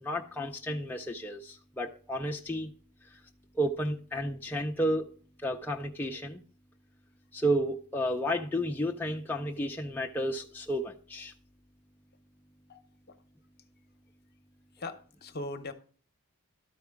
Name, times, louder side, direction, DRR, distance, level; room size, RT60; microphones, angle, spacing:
voice 1, 0.0-2.7 3.5-5.1 5.4-6.4 7.3-11.3, equal, 10° left, 0.5 m, -32 dB
voice 2, 14.8-15.7, left 2 dB, 45° left, 0.8 m, -39 dB
12.5 x 4.7 x 3.5 m
head